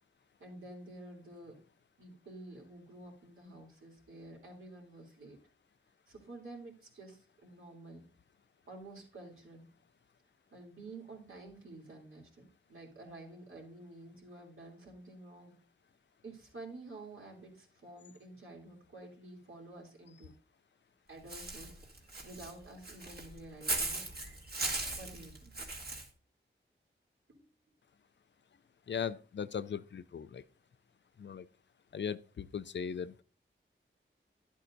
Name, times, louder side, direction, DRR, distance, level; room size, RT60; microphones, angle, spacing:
voice 1, 0.4-1.6 2.0-5.4 6.1-8.0 8.7-9.6 10.5-15.5 16.2-20.3 21.1-24.0 24.9-25.5 27.3-27.5, right 2 dB, 75° right, 3.2 m, -50 dB
Walk footsteps / Bird, 21.3-26.1, right 2 dB, 50° right, 1.8 m, -38 dB
voice 2, 28.9-30.4 31.2-31.5 31.9-33.2, left 7 dB, 60° left, 0.5 m, -38 dB
11.0 x 8.4 x 2.6 m
wide cardioid pair, 60°, 21 cm